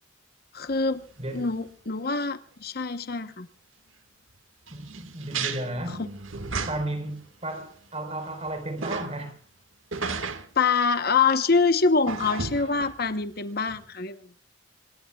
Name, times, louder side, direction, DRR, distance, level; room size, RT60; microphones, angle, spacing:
voice 1, 0.5-1.1 1.3-3.5 5.9-6.0 10.6-14.2, left 4 dB, 50° left, 1.0 m, -25 dB
sound 1, 0.7-0.8 1.3-1.4 1.7-1.8 4.7-7.1 7.5-7.6 8.1-9.1 9.9-10.5 12.1-13.3 13.7-13.8, right 4 dB, 90° right, 1.8 m, -34 dB
voice 2, 1.2-1.5 4.7-6.1 6.7-9.4, right 1 dB, 30° right, 4.3 m, -34 dB
26.5 x 23.0 x 2.3 m
head